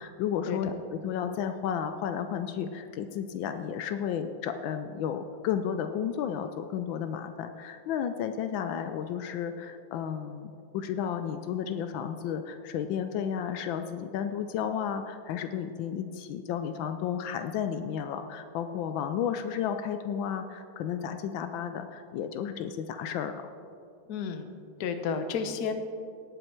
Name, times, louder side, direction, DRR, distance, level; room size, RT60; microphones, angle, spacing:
voice 1, 0.0-23.5, left 8 dB, 80° left, 8 dB, 1.3 m, -33 dB
voice 2, 24.1-24.5 24.8-25.7, left 6 dB, 60° left, 8 dB, 1.2 m, -31 dB
17.5 x 7.7 x 4.5 m, 2.5 s
omnidirectional pair, 2.2 m